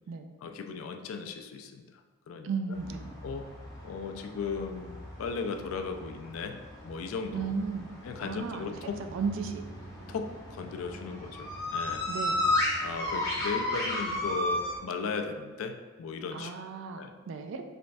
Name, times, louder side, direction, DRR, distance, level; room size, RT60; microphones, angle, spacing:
voice 1, 0.4-1.9 2.3-2.8 3.2-3.5 3.8-6.6 6.8-7.5 8.0-9.0 10.1-12.1 12.8-16.5 17.0-17.1, left 5 dB, 80° left, 6 dB, 0.3 m, -37 dB
voice 2, 2.4-3.2 7.3-7.9 8.2-9.7 12.1-12.5 16.3-17.6, right 5 dB, 65° right, 6 dB, 0.3 m, -35 dB
sound 1, 2.7-14.8, left 1 dB, 15° left, 0.8 m, -34 dB
3.3 x 3.1 x 2.5 m, 1.3 s
head